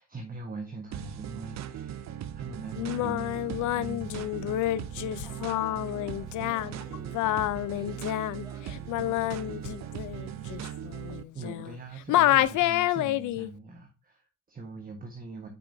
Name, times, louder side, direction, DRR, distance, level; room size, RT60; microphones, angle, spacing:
voice 1, 0.0-4.1 6.9-7.1 11.3-15.5, right 3 dB, 30° right, 1.2 m, -42 dB
sound 1, 0.9-11.2, right 10 dB, 65° right, 0.6 m, -39 dB
sound 2, 2.5-8.1, left 4 dB, 30° left, 1.4 m, -58 dB
Singing, 2.8-11.8 12.1-13.5, left 14 dB, 80° left, 0.5 m, -28 dB
voice 2, 5.2-7.3 7.7-10.1 10.5-10.7, equal, 15° right, 3.1 m, -52 dB
9.3 x 5.0 x 2.7 m
cardioid pair, 90°, 30 cm